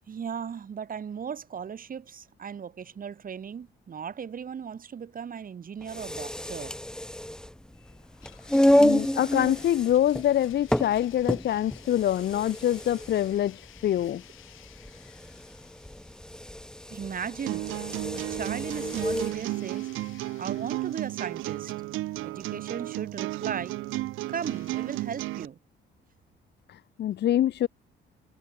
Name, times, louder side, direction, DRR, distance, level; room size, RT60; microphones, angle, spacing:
voice 1, 0.1-6.8 16.9-17.7 18.1-20.1 20.4-21.7 22.2-23.8 24.3-25.6, right 7 dB, 45° right, 1.7 m, -37 dB
sound 1, 5.8-19.4, left 1 dB, 5° left, 1.0 m, -29 dB
Domestic sounds home sounds, 8.2-17.4 17.6-17.7 18.5-22.4 24.3-25.1, left 14 dB, 85° left, 4.3 m, -55 dB
voice 2, 8.8-14.2 26.7-27.7, left 11 dB, 60° left, 0.6 m, -25 dB
sound 2, 17.5-25.5, right 17 dB, 85° right, 0.6 m, -33 dB
cardioid pair, 90°, 20 cm